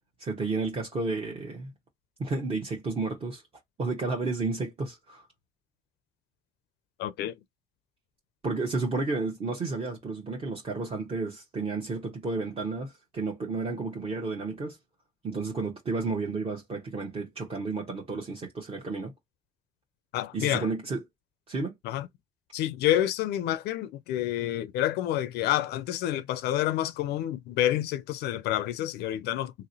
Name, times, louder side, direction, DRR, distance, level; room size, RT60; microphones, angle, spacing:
voice 1, 0.2-1.7 2.2-3.4 3.8-5.3 8.4-14.8 15.2-19.1 20.3-21.0 21.5-21.7, right 3 dB, 35° right, 0.9 m, -32 dB
voice 2, 7.0-7.4 20.1-20.7 21.8-22.1 22.5-29.5, left 13 dB, 75° left, 0.4 m, -28 dB
2.9 x 2.8 x 2.6 m
cardioid pair, 110°, 17 cm